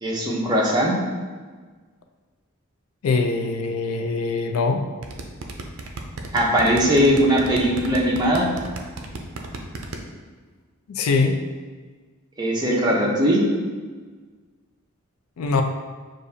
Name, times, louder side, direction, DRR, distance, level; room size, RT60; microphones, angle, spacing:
voice 1, 0.0-1.0 6.3-8.5 12.4-13.4, equal, 20° right, -3 dB, 0.7 m, -20 dB
voice 2, 3.0-4.8 10.9-11.4 15.4-15.6, left 4 dB, 75° left, 5 dB, 0.4 m, -22 dB
sound 1, 5.0-10.0, right 3 dB, 65° right, 0.5 m, -33 dB
6.3 x 2.5 x 2.7 m, 1.4 s
head